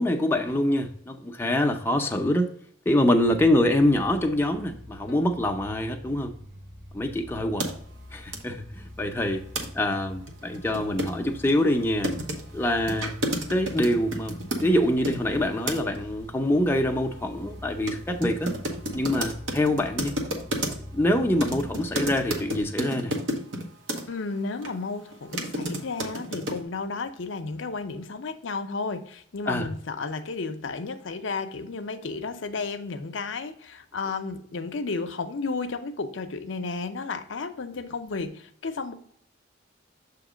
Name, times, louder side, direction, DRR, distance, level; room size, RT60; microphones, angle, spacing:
voice 1, 0.0-2.5 2.9-6.3 6.9-7.7 8.1-9.4 9.7-12.1 12.5-13.2 13.5-18.6 18.9-20.1 20.9-23.2 29.5-29.7, left 1 dB, 10° left, 4 dB, 0.5 m, -25 dB
sound 1, 3.1-22.6, left 1 dB, 50° right, 1.2 m, -45 dB
sound 2, 7.6-7.7 8.3-8.4 9.6-9.7 9.9-10.0 10.3-15.2 15.7-16.0 17.9-18.0 18.2-21.0 21.4-24.0 24.6-24.7 25.1-26.6, equal, 70° right, 1.0 m, -31 dB
voice 2, 24.1-38.9, left 4 dB, 65° left, 9 dB, 0.6 m, -33 dB
7.1 x 2.9 x 4.9 m, 0.64 s
head